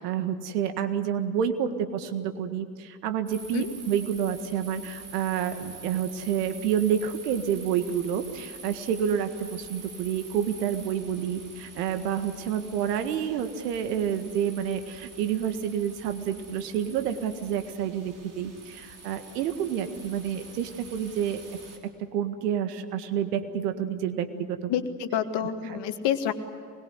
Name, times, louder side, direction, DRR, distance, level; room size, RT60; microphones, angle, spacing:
voice 1, 0.0-21.4 21.8-24.7 25.7-25.8, right 8 dB, 80° right, 9 dB, 1.8 m, -29 dB
sound 1, 3.3-21.8, right 4 dB, 40° right, 4.7 m, -46 dB
voice 2, 24.7-26.3, left 9 dB, 60° left, 8 dB, 2.0 m, -28 dB
24.5 x 21.5 x 8.0 m, 2.3 s
hypercardioid pair, 65°, 47 cm